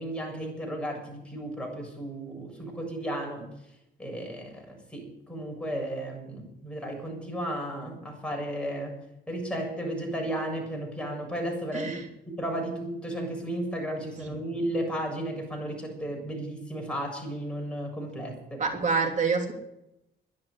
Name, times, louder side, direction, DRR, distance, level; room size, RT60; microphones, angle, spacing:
voice 1, 0.0-3.5 4.0-9.0 9.3-11.9 12.3-18.6, right 1 dB, 5° left, 0 dB, 7.3 m, -34 dB
voice 2, 11.7-12.1 14.2-14.4 18.6-19.5, right 4 dB, 40° right, 2 dB, 3.3 m, -27 dB
11.5 x 10.5 x 9.9 m, 0.83 s
cardioid pair, 90°, 20 cm